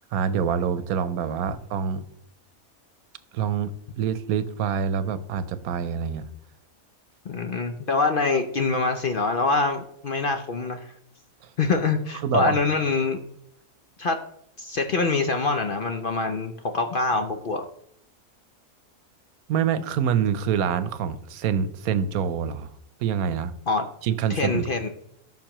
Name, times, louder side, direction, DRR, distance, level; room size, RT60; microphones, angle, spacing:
voice 1, 0.1-2.0 3.3-6.3 12.2-12.6 19.5-22.7 23.0-23.5 24.0-24.7, right 7 dB, 85° right, 13 dB, 1.1 m, -26 dB
voice 2, 7.3-10.9 11.6-13.2 14.0-14.2 14.6-17.6 23.7-23.9 24.3-24.9, left 3 dB, 55° left, 6 dB, 0.6 m, -25 dB
13.5 x 5.7 x 3.0 m, 0.72 s
omnidirectional pair, 1.5 m